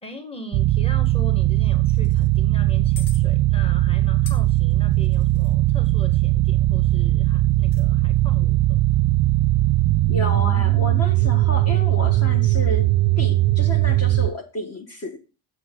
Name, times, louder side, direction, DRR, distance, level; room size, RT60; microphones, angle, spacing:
voice 1, 0.0-8.8, left 1 dB, 10° left, 1.5 m, -40 dB
sound 1, 0.5-14.3, right 16 dB, 50° right, 0.5 m, -19 dB
sound 2, 1.9-2.3 3.0-3.2 4.3-5.5 7.5-7.9, left 6 dB, 90° left, 1.4 m, -43 dB
voice 2, 10.1-12.9 13.2-15.2, left 2 dB, 35° left, 1.4 m, -31 dB
7.4 x 6.2 x 3.7 m
supercardioid pair, 90°, 45 cm